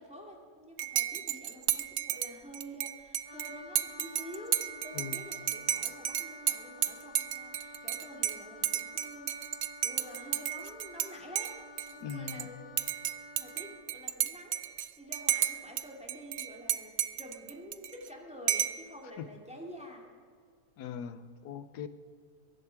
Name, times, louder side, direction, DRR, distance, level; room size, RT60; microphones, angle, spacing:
voice 1, 0.0-9.5 9.8-11.6 11.9-13.0 13.4-20.1, equal, 5° right, -1 dB, 2.2 m, -48 dB
Dishes pots and pans / Cutlery silverware / Chink clink, 0.8-11.1 11.4-12.4 12.8-15.8 16.1-18.1 18.5-18.9, right 11 dB, 65° right, 0.7 m, -33 dB
Wind instrument woodwind instrument, 3.2-13.9, left 3 dB, 20° left, 1.0 m, -50 dB
voice 2, 12.0-12.5 19.2-19.3 20.8-21.9, left 7 dB, 85° left, 12 dB, 1.3 m, -40 dB
22.5 x 11.0 x 4.6 m, 2.1 s
omnidirectional pair, 1.7 m